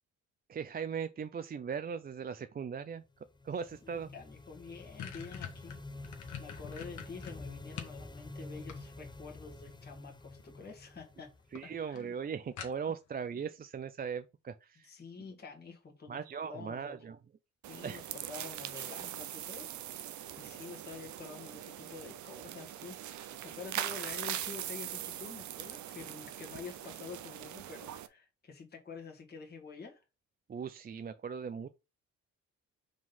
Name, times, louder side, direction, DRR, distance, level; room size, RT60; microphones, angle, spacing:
voice 1, 0.5-3.0 3.4-4.1 11.5-14.9 16.1-17.2 17.8-18.0 20.2-20.3 30.5-31.7, right 6 dB, 30° right, 0.5 m, -39 dB
sound 1, 3.1-11.9, left 2 dB, 15° left, 0.7 m, -48 dB
voice 2, 3.8-5.8 6.0-11.3 11.6-12.1 14.8-17.0 17.7-19.8 20.1-30.0, left 5 dB, 35° left, 1.9 m, -48 dB
sound 2, 4.1-4.2 4.5-8.0 8.4-9.3 10.4-10.8 11.1-11.2 11.6-11.7 12.0-12.1 12.6-13.1, left 8 dB, 70° left, 1.6 m, -45 dB
sound 3, 17.6-28.1, right 12 dB, 70° right, 0.7 m, -41 dB
5.1 x 3.8 x 5.4 m
cardioid pair, 90°, 30 cm